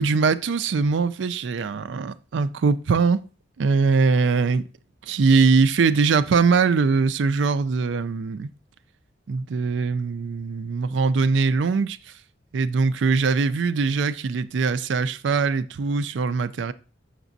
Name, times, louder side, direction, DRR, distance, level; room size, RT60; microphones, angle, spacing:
voice 1, 0.0-3.2 3.6-4.7 5.0-8.5 9.3-12.0 12.5-16.7, right 4 dB, 70° right, 0.4 m, -21 dB
6.6 x 6.0 x 2.6 m
head